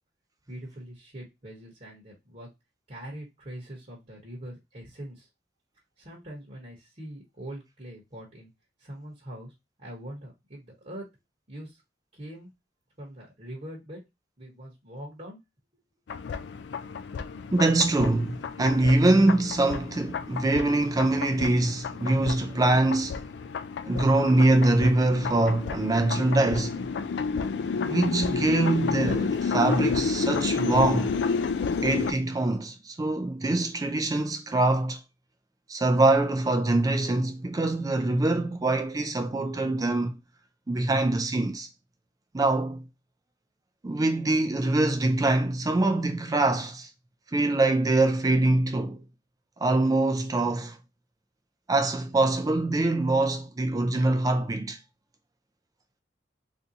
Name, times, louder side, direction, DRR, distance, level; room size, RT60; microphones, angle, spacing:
voice 1, 0.5-2.5 2.9-5.3 6.0-8.5 8.8-9.5 9.8-11.1 11.5-11.8 12.1-12.5 13.0-14.0 14.4-15.4, right 1 dB, 40° right, 1.0 m, -42 dB
sound 1, 16.1-32.1, left 5 dB, 65° left, 0.3 m, -31 dB
voice 2, 17.5-23.2 23.9-26.8 27.8-31.2 31.8-35.0 35.7-40.2 40.7-41.7 42.3-42.8 43.8-46.9 47.3-49.0 49.6-50.8 51.7-54.8, right 2 dB, 20° right, 0.4 m, -24 dB
3.6 x 2.6 x 2.6 m
head